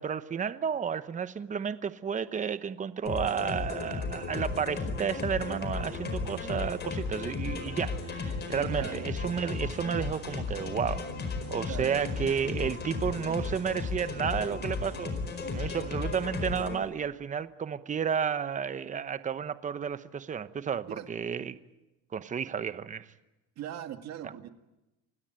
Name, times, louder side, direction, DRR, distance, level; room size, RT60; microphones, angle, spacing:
voice 1, 0.0-11.1 11.5-15.1 15.5-21.6 22.1-23.1, right 7 dB, 25° right, 13 dB, 1.0 m, -32 dB
sound 1, 3.1-16.8, left 4 dB, 35° left, 4.8 m, -35 dB
voice 2, 8.7-9.1 11.7-12.3 20.9-21.1 23.6-24.5, right 11 dB, 60° right, 7 dB, 2.1 m, -40 dB
28.0 x 17.0 x 9.0 m, 1.0 s
cardioid pair, 140°, 29 cm